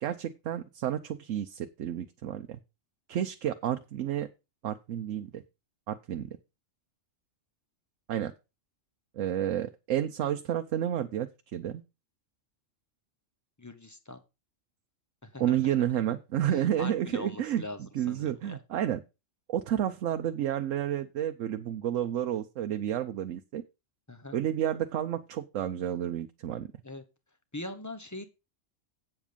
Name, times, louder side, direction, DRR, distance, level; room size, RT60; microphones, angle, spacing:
voice 1, 0.0-2.6 3.1-4.3 4.6-5.4 5.9-6.4 8.1-8.3 9.2-11.8 15.4-19.0 19.5-23.6 24.3-26.7, right 10 dB, 80° right, 7 dB, 1.0 m, -31 dB
voice 2, 13.6-14.2 15.2-15.7 16.5-17.8 18.1-18.6 24.1-24.4 26.8-27.0 27.5-28.3, left 2 dB, 15° left, 8 dB, 1.1 m, -41 dB
8.3 x 7.3 x 5.2 m, 0.28 s
omnidirectional pair, 1.3 m